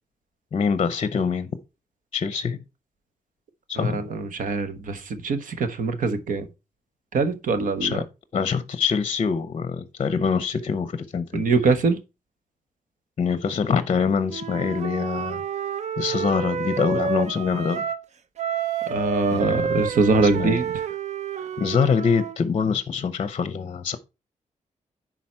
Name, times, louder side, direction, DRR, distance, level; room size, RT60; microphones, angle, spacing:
voice 1, 0.5-1.5 2.1-2.6 3.7-4.0 7.8-8.0 8.3-11.4 13.2-15.4 16.0-17.8 19.3-19.7 20.4-20.6 21.6-24.0, left 6 dB, 45° left, 0.6 m, -24 dB
voice 2, 3.8-6.5 7.1-8.0 11.3-12.0 18.9-20.7, right 4 dB, 80° right, 1.2 m, -23 dB
Wind instrument woodwind instrument, 14.3-18.0 18.4-22.4, right 6 dB, 55° right, 0.5 m, -29 dB
10.5 x 4.0 x 4.3 m
wide cardioid pair, 145°, 14 cm